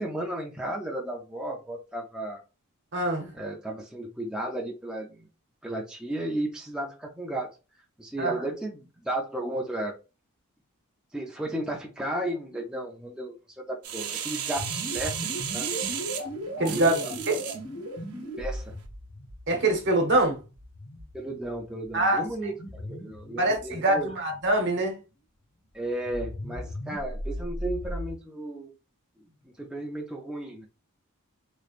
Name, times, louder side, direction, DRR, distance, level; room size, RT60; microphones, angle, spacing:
voice 1, 0.0-2.4 3.3-5.3 5.6-7.6 8.0-9.9 11.1-15.7 16.7-17.2 18.4-18.8 21.1-24.1 25.7-28.7 29.6-30.7, right 1 dB, 5° right, 0.4 m, -34 dB
voice 2, 2.9-3.3 8.2-8.3 16.6-16.9 17.3-17.4 19.5-20.4 21.9-22.2 23.4-24.9, right 2 dB, 55° right, 0.9 m, -24 dB
sound 1, 13.8-17.6 18.2-18.3, right 9 dB, 80° right, 0.6 m, -33 dB
sound 2, 14.6-24.7 25.9-28.1, equal, 60° left, 0.9 m, -38 dB
3.3 x 3.0 x 2.4 m
head